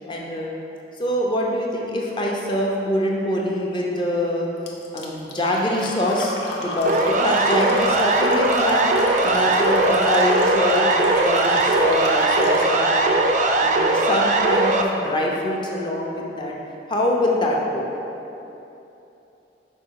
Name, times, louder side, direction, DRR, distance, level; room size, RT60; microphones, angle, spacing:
voice 1, 0.1-0.5 1.0-4.5 4.9-8.8 9.2-13.1 13.6-16.5 16.9-17.9, left 1 dB, 25° left, -2 dB, 0.7 m, -24 dB
Fill (with liquid), 4.7-12.8, left 2 dB, 75° left, 0.7 m, -32 dB
Siren, 6.8-14.8, right 2 dB, 45° right, 0.4 m, -19 dB
5.4 x 4.7 x 4.6 m, 2.9 s
head